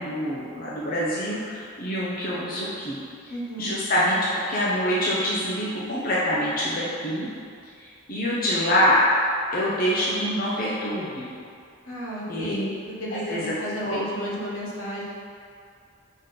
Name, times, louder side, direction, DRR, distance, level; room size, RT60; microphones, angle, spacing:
voice 1, 0.0-3.0 3.2-7.3 8.1-9.0 9.5-11.3 12.3-12.6 13.3-13.5 13.8-14.0, equal, 40° left, -7 dB, 0.8 m, -25 dB
voice 2, 3.3-3.7 11.8-15.0, equal, 75° left, -5 dB, 1.4 m, -32 dB
6.3 x 3.8 x 5.3 m, 2.4 s
head